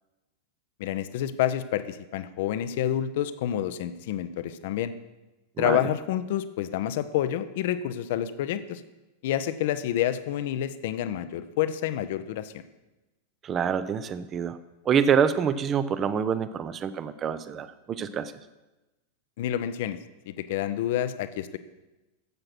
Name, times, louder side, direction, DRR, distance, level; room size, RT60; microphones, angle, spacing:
voice 1, 0.8-4.9 5.6-8.8 9.2-12.6 19.4-20.0 20.3-21.6, left 11 dB, 50° left, 12 dB, 0.7 m, -28 dB
voice 2, 5.6-5.9 13.4-14.6 14.8-18.3, right 7 dB, 25° right, 14 dB, 0.7 m, -26 dB
12.0 x 7.8 x 5.9 m, 1.1 s
figure-of-eight pair, 90°, 0 cm